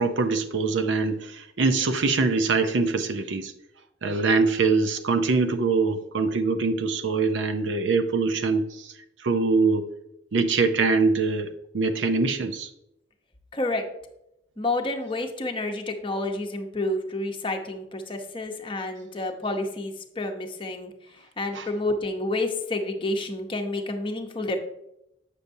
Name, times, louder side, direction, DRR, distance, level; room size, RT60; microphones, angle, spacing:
voice 1, 0.0-3.5 4.0-8.9 9.2-9.9 10.3-12.7 21.5-21.7, right 4 dB, 75° right, 8 dB, 0.5 m, -23 dB
voice 2, 13.5-13.8 14.6-20.9 21.4-24.6, left 2 dB, 25° left, 4 dB, 0.8 m, -29 dB
8.3 x 6.6 x 2.7 m, 0.83 s
head